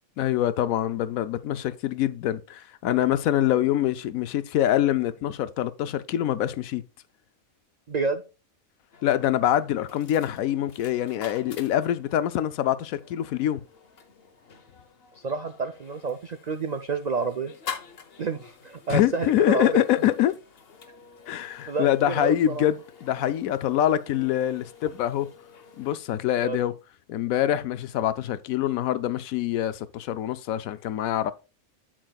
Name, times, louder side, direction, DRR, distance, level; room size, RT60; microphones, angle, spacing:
voice 1, 0.2-6.8 9.0-13.6 18.9-20.4 21.3-25.3 25.8-26.7 27.1-31.3, left 12 dB, 80° left, 1.0 m, -25 dB
voice 2, 7.9-8.2 15.1-17.5 18.2-19.8 21.7-22.6 26.4-26.6, right 4 dB, 55° right, 0.4 m, -29 dB
sound 1, 8.9-26.0, left 6 dB, 50° left, 1.1 m, -47 dB
8.6 x 7.7 x 2.3 m
omnidirectional pair, 1.4 m